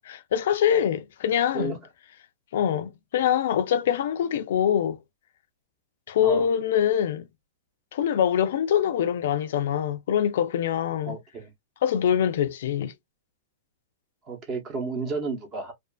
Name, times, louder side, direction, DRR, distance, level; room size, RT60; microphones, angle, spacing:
voice 1, 0.0-1.8 2.5-5.0 6.1-7.3 7.9-11.2 11.8-12.9, left 9 dB, 60° left, 0.4 m, -24 dB
voice 2, 11.0-11.5 14.3-15.7, right 3 dB, 25° right, 0.8 m, -32 dB
2.4 x 2.4 x 2.3 m
supercardioid pair, 170°, 0 cm